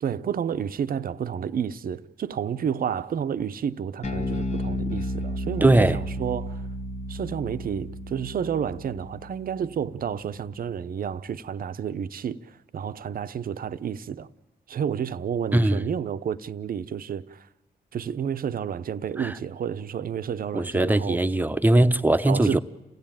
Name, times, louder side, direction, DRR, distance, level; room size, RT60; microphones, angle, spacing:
voice 1, 0.0-6.7 7.1-14.3 14.7-17.5 17.9-21.2 22.3-22.6, right 8 dB, 55° right, 0.7 m, -30 dB
Bass guitar, 4.0-10.5, left 1 dB, 40° left, 1.3 m, -33 dB
voice 2, 5.6-6.0 15.5-15.8 19.2-19.3 20.5-22.6, right 1 dB, 10° right, 0.8 m, -20 dB
28.0 x 16.0 x 9.0 m
cardioid pair, 75°, 17 cm